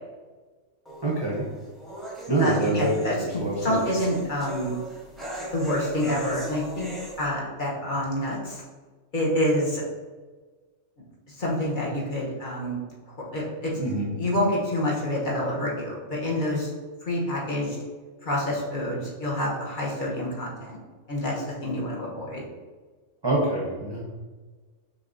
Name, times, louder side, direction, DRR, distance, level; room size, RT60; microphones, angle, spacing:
sound 1, 0.9-7.3, right 1 dB, ahead, 0.7 m, -37 dB
voice 1, 1.0-1.5 2.3-3.8 13.8-14.2 23.2-24.0, right 2 dB, 30° right, -5 dB, 0.5 m, -26 dB
voice 2, 2.4-4.8 5.5-6.9 7.2-8.6 9.1-9.8 11.3-12.8 13.1-13.7 14.2-16.7 17.0-17.8 18.2-20.8 21.1-22.4, left 1 dB, 40° left, -5 dB, 1.0 m, -27 dB
6.4 x 2.8 x 2.6 m, 1.4 s
omnidirectional pair, 1.4 m